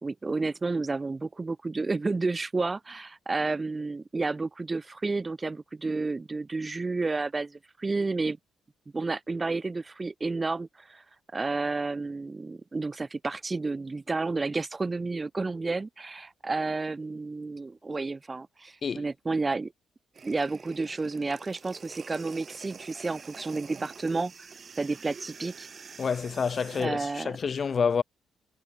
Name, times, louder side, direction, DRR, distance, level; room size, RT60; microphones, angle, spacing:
voice 1, 0.0-8.4 8.9-11.0 11.3-19.7 20.2-24.3 24.8-25.7 26.7-27.4, right 3 dB, 25° right, 2.3 m, -31 dB
sound 1, 20.1-26.9, right 6 dB, 40° right, 3.3 m, -47 dB
voice 2, 26.0-28.0, left 6 dB, 45° left, 2.6 m, -28 dB
cardioid pair, 90°, 0 cm